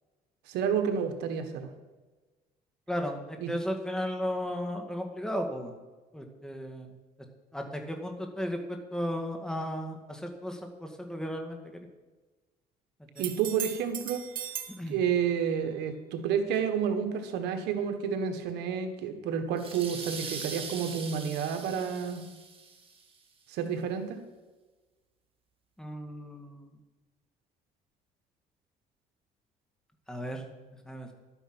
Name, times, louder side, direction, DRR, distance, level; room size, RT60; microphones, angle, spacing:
voice 1, 0.5-1.7 3.4-3.5 13.2-14.2 14.9-22.2 23.5-24.2, right 7 dB, 85° right, 7 dB, 1.5 m, -30 dB
voice 2, 2.9-5.7 6.1-6.9 7.5-11.8 13.2-13.3 14.8-15.0 25.8-26.7 30.1-30.4 30.9-31.1, equal, 5° left, 3 dB, 2.0 m, -35 dB
sound 1, 13.2-14.8 18.5-18.6, right 10 dB, 55° right, 1.2 m, -37 dB
sound 2, 19.6-23.0, right 4 dB, 30° right, 2.1 m, -41 dB
12.0 x 8.9 x 6.2 m, 1.2 s
cardioid pair, 110°, 17 cm